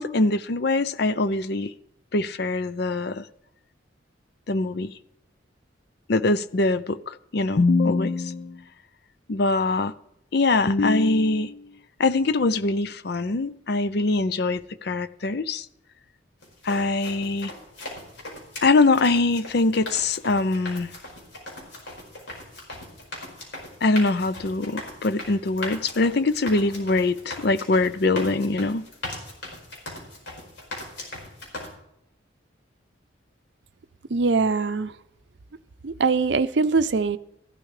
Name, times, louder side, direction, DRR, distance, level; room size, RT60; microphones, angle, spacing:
voice 1, 0.0-1.7 2.1-3.2 4.5-4.9 6.1-8.6 9.3-9.9 10.3-11.7 12.0-15.7 16.6-17.5 18.6-20.9 23.8-28.9, left 3 dB, 55° left, 0.5 m, -23 dB
sound 1, 16.4-31.7, left 1 dB, 70° left, 5.0 m, -39 dB
voice 2, 34.1-35.0 35.8-37.2, right 4 dB, 65° right, 0.6 m, -22 dB
15.0 x 12.0 x 3.3 m
head